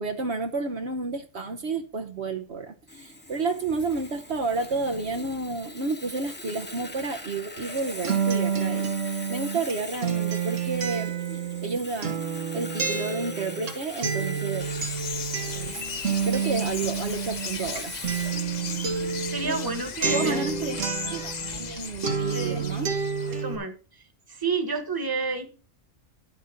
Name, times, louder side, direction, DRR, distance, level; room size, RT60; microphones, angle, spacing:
voice 1, 0.0-11.1 11.6-12.2 12.5-14.6 15.5-15.9 16.2-17.9 19.4-19.6 20.1-22.9 23.2-23.4, right 3 dB, 60° right, 1.2 m, -31 dB
Sawing, 2.9-20.4, left 1 dB, 10° left, 1.1 m, -42 dB
Acoustic guitar, 7.6-21.8 22.0-23.6, right 6 dB, 85° right, 1.9 m, -29 dB
sound 1, 14.6-23.4, left 6 dB, 40° left, 0.7 m, -37 dB
voice 2, 19.3-20.5 20.9-21.1 22.3-22.7 23.3-23.7 24.3-25.5, right 4 dB, 20° right, 1.4 m, -30 dB
11.0 x 6.6 x 5.2 m
omnidirectional pair, 1.3 m